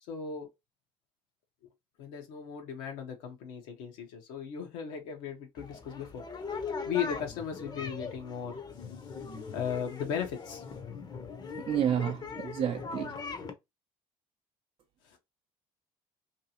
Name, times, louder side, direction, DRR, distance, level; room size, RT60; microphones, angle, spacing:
voice 1, 0.1-0.5 2.0-6.2 6.9-8.6 9.5-10.6, left 7 dB, 85° left, 0.8 m, -36 dB
sound 1, 5.6-13.5, left 5 dB, 35° left, 0.6 m, -40 dB
voice 2, 11.7-13.1, right 9 dB, 45° right, 0.5 m, -30 dB
2.7 x 2.3 x 2.8 m
supercardioid pair, 75°, 13 cm